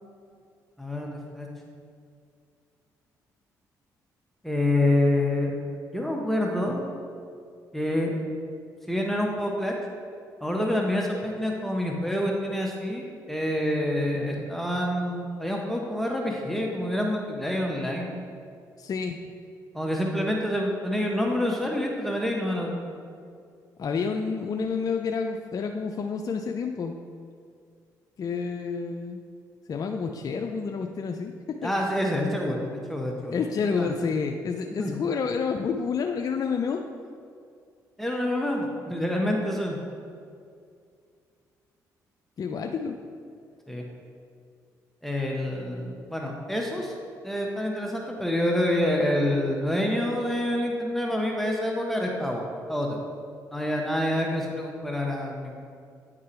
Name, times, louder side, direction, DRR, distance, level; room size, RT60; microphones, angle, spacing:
voice 1, 0.8-1.5 4.4-5.5 5.9-6.9 7.7-8.2 8.9-9.8 10.4-18.1 19.7-22.7 31.6-32.6 32.9-33.3 33.8-33.9 34.7-34.9 38.0-39.8 43.7-43.8 45.0-46.9 47.2-53.0 53.5-55.6, left 1 dB, 5° left, -1 dB, 1.0 m, -27 dB
voice 2, 18.8-19.2 23.8-27.0 28.2-29.2 29.7-31.7 33.3-36.8 42.4-43.0, left 5 dB, 50° left, 4 dB, 0.4 m, -29 dB
9.4 x 3.7 x 4.4 m, 2.3 s
supercardioid pair, 55°, 8 cm